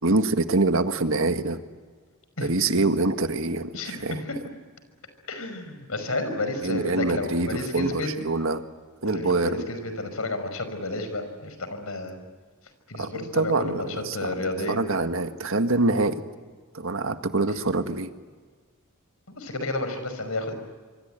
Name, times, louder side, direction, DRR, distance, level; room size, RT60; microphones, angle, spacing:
voice 1, 0.0-1.6 2.4-4.2 6.6-8.6 9.0-9.7 13.0-14.3 14.7-16.2 16.7-18.1, right 2 dB, 65° right, 8 dB, 1.8 m, -25 dB
voice 2, 3.7-4.3 5.3-8.1 9.0-12.2 12.9-14.8 19.3-20.5, left 2 dB, 75° left, 9 dB, 5.4 m, -31 dB
26.5 x 24.5 x 9.0 m, 1.5 s
head